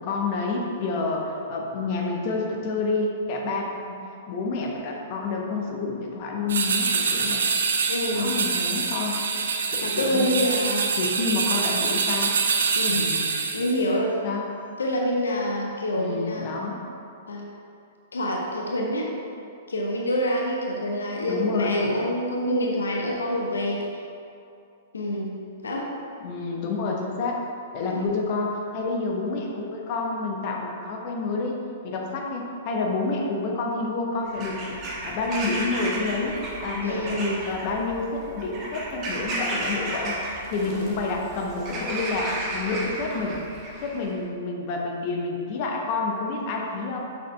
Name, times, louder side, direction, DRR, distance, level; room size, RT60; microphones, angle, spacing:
voice 1, 0.0-3.9 4.3-7.5 8.1-9.2 10.0-10.3 11.0-12.3 12.9-13.3 14.2-14.4 16.0-16.8 21.3-22.0 26.2-27.4 27.7-40.2 40.5-43.4 43.8-47.0, left 3 dB, 40° left, 0 dB, 0.9 m, -29 dB
sound 1, 6.5-13.8, right 5 dB, 60° right, 0.6 m, -25 dB
voice 2, 7.9-8.3 9.8-10.9 12.8-13.1 13.5-14.2 14.8-16.5 17.3-17.5 18.1-19.1 19.7-23.8 24.9-25.4 25.6-25.9 27.9-28.1 36.8-37.5 40.6-41.0, equal, 70° left, -1 dB, 0.8 m, -26 dB
Bird vocalization bird call bird song / Crow, 34.2-44.1, right 1 dB, 25° right, 1.2 m, -33 dB
6.6 x 6.5 x 3.4 m, 2.6 s
figure-of-eight pair, 105°, 0 cm